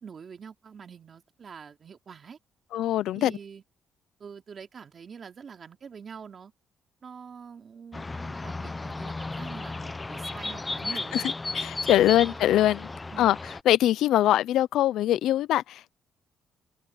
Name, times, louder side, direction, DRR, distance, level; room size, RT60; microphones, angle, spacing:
voice 1, 0.0-2.4 3.1-3.6 4.2-6.5 7.0-11.3 12.0-12.4 13.1-13.4, right 6 dB, 45° right, 3.1 m, -45 dB
voice 2, 2.7-3.3 11.1-11.2 11.5-12.9 13.2-13.4 13.7-15.9, left 13 dB, 85° left, 0.6 m, -22 dB
sound 1, 7.9-13.6, left 3 dB, 20° left, 0.8 m, -34 dB
open air
cardioid pair, 90°, 0 cm